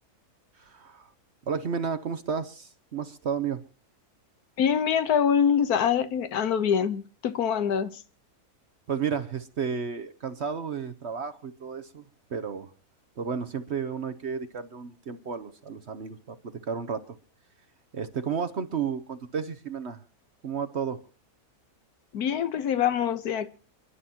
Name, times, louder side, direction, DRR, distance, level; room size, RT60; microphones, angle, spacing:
voice 1, 0.6-1.1 1.5-3.6 8.9-12.0 12.3-12.7 13.2-17.2 17.9-20.0 20.4-21.0, right 6 dB, 50° right, 1.0 m, -32 dB
voice 2, 4.6-8.0 22.1-23.5, left 8 dB, 75° left, 1.5 m, -24 dB
28.5 x 11.5 x 2.9 m
omnidirectional pair, 1.6 m